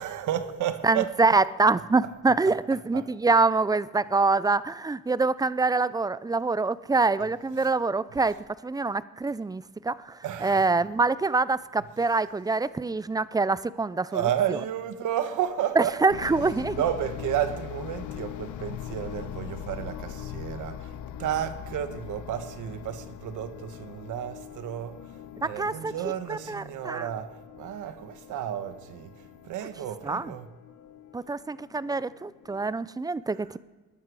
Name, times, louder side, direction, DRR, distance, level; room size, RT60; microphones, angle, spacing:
voice 1, 0.0-1.1 2.4-2.5 2.9-3.1 10.2-10.7 14.1-16.0 16.4-25.0 25.4-30.5, right 10 dB, 80° right, 1.2 m, -32 dB
voice 2, 0.8-8.4 8.6-14.2 15.8-16.8 25.4-25.9 26.3-27.1 30.0-30.3 31.1-33.6, right 3 dB, 15° right, 0.4 m, -25 dB
sound 1, 16.1-32.8, left 10 dB, 75° left, 0.9 m, -42 dB
20.5 x 11.0 x 4.8 m
cardioid pair, 90°, 30 cm